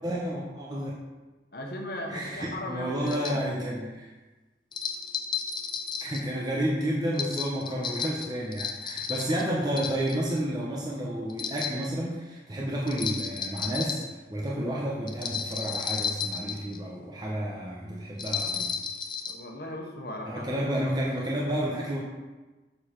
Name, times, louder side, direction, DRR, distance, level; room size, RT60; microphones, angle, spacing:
voice 1, 0.0-1.0 2.1-4.1 6.0-18.8 20.3-22.0, equal, 20° right, -4 dB, 0.9 m, -31 dB
voice 2, 1.5-3.4 19.3-20.6, left 1 dB, 60° left, 1 dB, 1.2 m, -37 dB
sound 1, 3.1-3.4 4.7-6.2 7.1-9.4 9.8-10.4 11.3-11.8 12.9-14.0 15.1-16.8 18.2-19.3, left 6 dB, 25° left, 0.6 m, -33 dB
6.8 x 6.8 x 4.5 m, 1.2 s
head